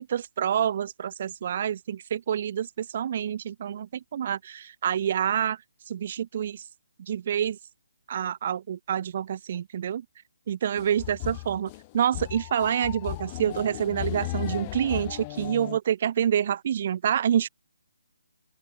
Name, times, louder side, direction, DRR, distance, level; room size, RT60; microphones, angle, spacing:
voice 1, 0.0-5.6 5.9-6.7 7.0-7.6 8.1-10.0 10.5-17.5, right 9 dB, 35° right, 6.8 m, -27 dB
sound 1, 10.8-15.8, left 22 dB, 20° left, 4.5 m, -35 dB
open air
hypercardioid pair, 165°, 0 cm